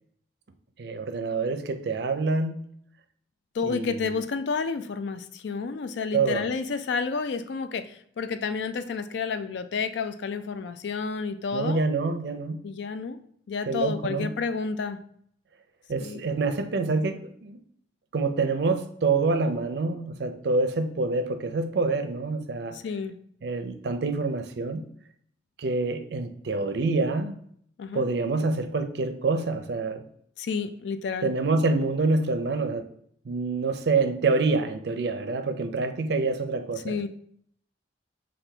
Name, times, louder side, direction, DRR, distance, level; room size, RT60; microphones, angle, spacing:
voice 1, 0.8-2.6 3.6-4.1 6.1-6.4 11.5-12.6 13.7-14.3 15.9-17.6 18.1-22.8 23.4-24.8 25.6-27.3 27.9-30.0 31.2-32.9 33.3-37.1, right 3 dB, 65° right, 8 dB, 0.4 m, -26 dB
voice 2, 3.5-11.8 12.6-13.2 13.5-15.0 16.0-16.2 22.7-23.2 27.8-28.1 30.4-31.3 36.8-37.1, left 5 dB, 70° left, 11 dB, 0.4 m, -30 dB
5.8 x 2.6 x 3.3 m, 0.65 s
head